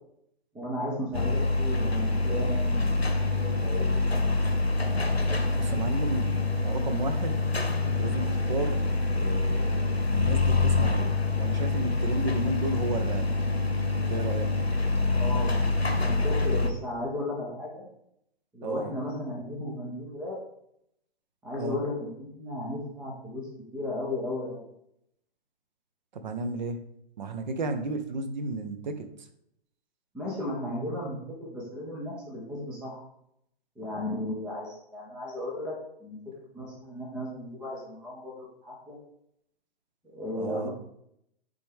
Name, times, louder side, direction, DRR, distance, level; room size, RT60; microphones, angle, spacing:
voice 1, 0.5-4.2 15.2-15.6 16.0-17.9 18.5-20.4 21.4-23.5 23.7-24.7 30.1-33.0 33.8-35.7 36.0-36.2 36.5-39.0 40.1-40.7, left 1 dB, 5° right, -2 dB, 0.4 m, -35 dB
sound 1, 1.1-16.7, left 3 dB, 85° left, 1.0 m, -26 dB
voice 2, 5.5-7.4 7.9-8.8 9.1-11.1 11.4-13.3 14.0-14.5 18.6-18.9 21.6-21.8 26.1-26.9 27.2-29.1 40.4-40.7, right 2 dB, 45° right, 8 dB, 0.8 m, -33 dB
9.5 x 3.6 x 3.5 m, 0.75 s
figure-of-eight pair, 125°, 31 cm